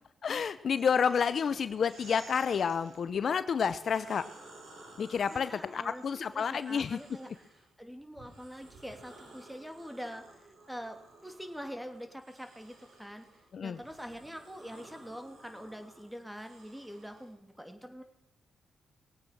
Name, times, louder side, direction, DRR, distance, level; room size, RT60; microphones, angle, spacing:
voice 1, 0.2-4.2 5.0-7.0 13.5-13.8, left 6 dB, 65° left, 13 dB, 0.6 m, -29 dB
sound 1, 0.7-3.0 3.6-7.7 8.1-17.3, right 2 dB, 80° right, 4.4 m, -55 dB
voice 2, 5.3-13.3 13.6-18.0, equal, 5° right, 6 dB, 2.8 m, -45 dB
20.0 x 8.8 x 6.0 m, 0.88 s
supercardioid pair, 50°, 0 cm